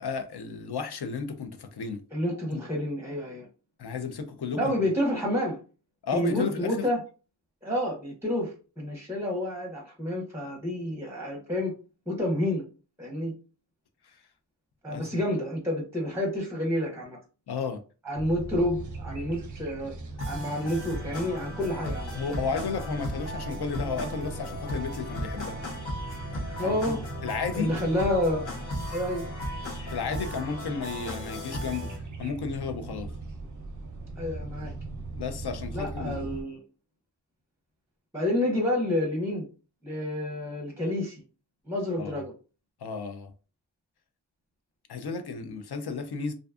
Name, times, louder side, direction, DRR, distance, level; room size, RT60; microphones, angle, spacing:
voice 1, 0.0-2.0 2.5-2.6 3.8-4.7 6.0-6.9 14.0-14.2 14.9-15.1 17.5-17.8 22.1-25.6 26.6-27.7 29.9-31.9 32.2-33.1 35.2-36.2 42.0-42.2 42.8-43.3 44.9-46.3, left 5 dB, 60° left, 0.5 m, -33 dB
voice 2, 2.1-3.5 4.6-5.6 6.1-7.0 7.6-11.7 12.1-12.6 13.0-13.3 14.8-17.2 18.0-19.9 20.3-22.2 26.6-27.0 27.5-28.5 28.9-29.2 34.2-34.7 35.7-36.6 38.1-39.5 39.8-41.2 41.7-42.3, left 1 dB, 5° right, 0.7 m, -29 dB
sound 1, 18.1-36.4, right 3 dB, 45° right, 0.4 m, -40 dB
sound 2, 20.2-32.0, left 1 dB, 85° left, 1.0 m, -37 dB
2.5 x 2.2 x 2.3 m
wide cardioid pair, 60°, 44 cm